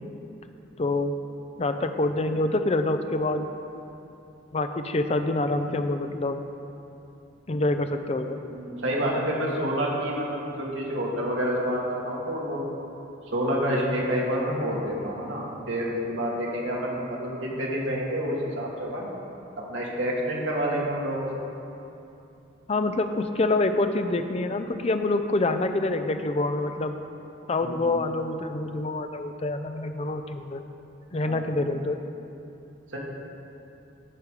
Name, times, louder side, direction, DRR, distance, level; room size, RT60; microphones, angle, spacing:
voice 1, 0.8-1.1 1.6-3.5 4.5-6.4 7.5-8.4 22.7-27.0 27.5-30.6 31.1-32.0, left 2 dB, 30° left, 7 dB, 0.5 m, -26 dB
voice 2, 8.5-12.6 13.3-19.1 19.7-21.4 27.6-28.0 31.2-31.5 32.9-33.0, equal, 75° right, -4 dB, 2.0 m, -28 dB
14.5 x 5.2 x 4.9 m, 2.8 s
head